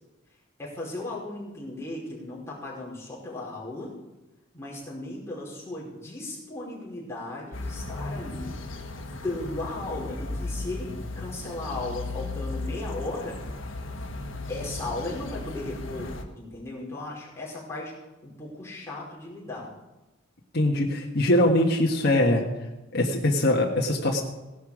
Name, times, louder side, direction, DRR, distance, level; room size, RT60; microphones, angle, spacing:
voice 1, 0.6-3.9 4.5-8.6 9.1-13.4 14.5-17.9 18.2-19.7, left 2 dB, 15° left, -6 dB, 4.9 m, -36 dB
sound 1, 7.5-16.2, left 2 dB, 75° left, 1.5 m, -36 dB
voice 2, 20.5-22.4 22.9-24.2, left 1 dB, 55° left, -1 dB, 1.5 m, -22 dB
17.0 x 11.5 x 4.9 m, 1.0 s
head